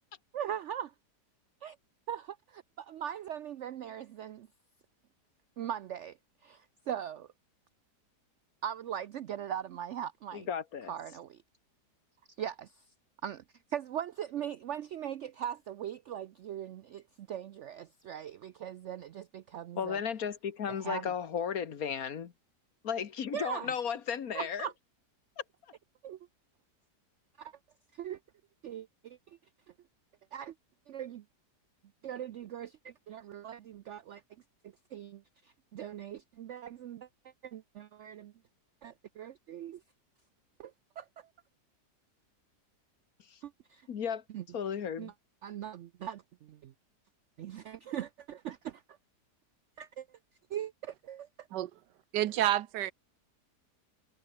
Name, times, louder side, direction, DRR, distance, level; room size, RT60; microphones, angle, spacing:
voice 1, 0.3-0.9 1.6-1.8 2.1-4.5 5.6-7.3 8.6-10.5 10.9-11.4 12.4-12.8 13.2-13.4 13.7-20.0 20.7-21.1 23.3-23.7 24.3-24.7 26.0-26.2 27.4-27.5 27.9-28.2 28.6-29.4 30.3-30.5 30.9-31.2 32.0-34.2 34.6-38.3 38.8-39.8 40.6-41.3 43.4-43.9 44.3-44.4 45.0-45.1 45.4-46.7 47.4-48.8 49.8-50.2 50.5-51.5, right 10 dB, 70° right, 0.7 m, -40 dB
voice 2, 10.3-10.9 19.8-22.3 22.8-24.7 43.3-43.4 43.9-44.2 44.5-45.1, left 7 dB, 60° left, 1.7 m, -34 dB
voice 3, 52.1-52.9, right 13 dB, 85° right, 1.4 m, -29 dB
omnidirectional pair, 1.8 m